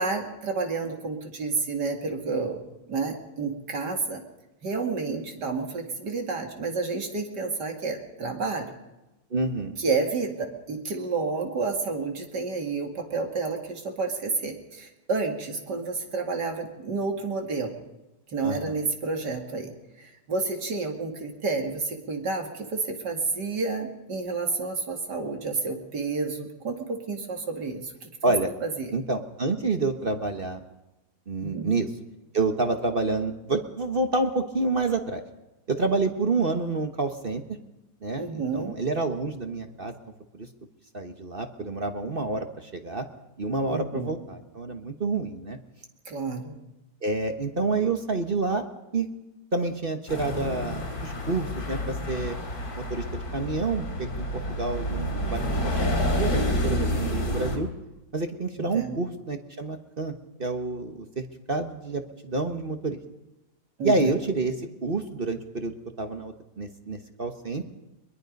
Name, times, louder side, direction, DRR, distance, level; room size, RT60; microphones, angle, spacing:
voice 1, 0.0-2.6 2.9-4.2 4.6-8.7 9.8-17.7 18.3-28.3 28.6-28.9 31.4-31.7 38.2-38.8 43.7-44.1 46.1-46.6 58.6-59.0 63.8-64.1, right 4 dB, 80° right, 3 dB, 3.0 m, -30 dB
voice 2, 9.3-9.8 18.4-18.8 28.2-28.5 28.9-30.6 31.3-31.9 32.3-35.2 35.7-37.4 38.0-39.9 40.4-40.5 40.9-43.1 43.4-45.6 47.0-48.6 48.9-49.1 49.5-52.3 52.8-53.0 53.3-55.4 55.8-55.9 56.2-57.7 58.1-60.1 60.4-63.0 63.8-64.6 64.8-67.7, right 3 dB, 35° right, 6 dB, 1.2 m, -28 dB
sound 1, 50.1-57.6, left 1 dB, 60° left, 3.7 m, -29 dB
22.5 x 22.0 x 5.3 m, 1.0 s
omnidirectional pair, 1.8 m